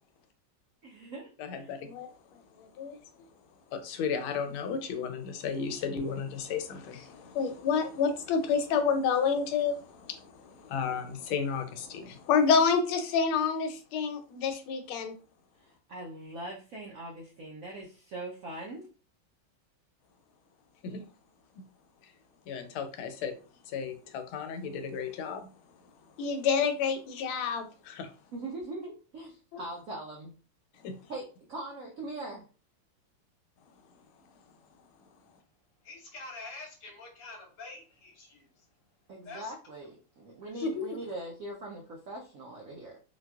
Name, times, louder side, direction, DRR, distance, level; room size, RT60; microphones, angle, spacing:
voice 1, 0.8-1.7 15.6-18.9 28.3-30.3 31.1-32.4 39.1-43.0, right 2 dB, 90° right, -2 dB, 0.7 m, -41 dB
voice 2, 1.4-2.1 2.6-3.0 3.7-15.2 20.8-21.0 22.5-23.4 23.7-25.5 26.2-28.1 29.5-29.6 30.8-31.0 40.6-40.9, left 6 dB, 80° left, 7 dB, 1.4 m, -30 dB
voice 3, 35.8-38.7 39.2-39.5 40.4-40.6, left 3 dB, 60° left, 0 dB, 1.3 m, -46 dB
4.2 x 2.3 x 2.3 m, 0.36 s
omnidirectional pair, 2.3 m